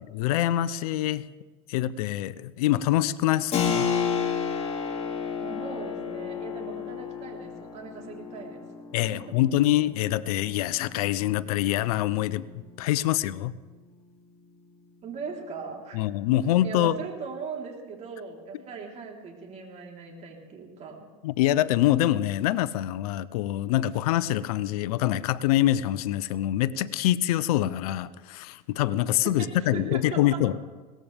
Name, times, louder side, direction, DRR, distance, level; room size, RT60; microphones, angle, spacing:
voice 1, 0.1-1.3 1.7-3.9 8.9-12.5 12.8-13.5 15.9-17.0 21.2-30.5, left 13 dB, 75° left, 17 dB, 0.7 m, -25 dB
Keyboard (musical), 3.5-13.9, left 7 dB, 35° left, 2.8 m, -33 dB
voice 2, 5.4-8.6 9.1-9.2 15.0-16.0 16.6-21.1 29.2-30.4, right 5 dB, 35° right, 0 dB, 3.9 m, -39 dB
21.5 x 18.5 x 3.5 m, 1.4 s
supercardioid pair, 120°, 19 cm